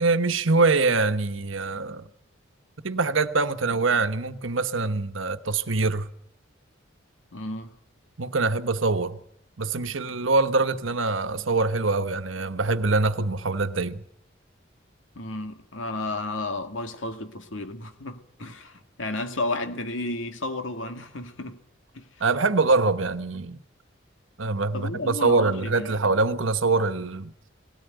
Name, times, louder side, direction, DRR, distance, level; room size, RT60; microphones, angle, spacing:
voice 1, 0.0-2.1 2.8-6.1 8.2-9.2 9.6-14.0 22.2-23.6 24.4-27.3, right 3 dB, 85° right, 1.2 m, -24 dB
voice 2, 7.3-7.7 15.2-21.6 21.9-22.1 24.7-26.2, left 2 dB, 80° left, 2.1 m, -33 dB
18.5 x 17.0 x 9.2 m
head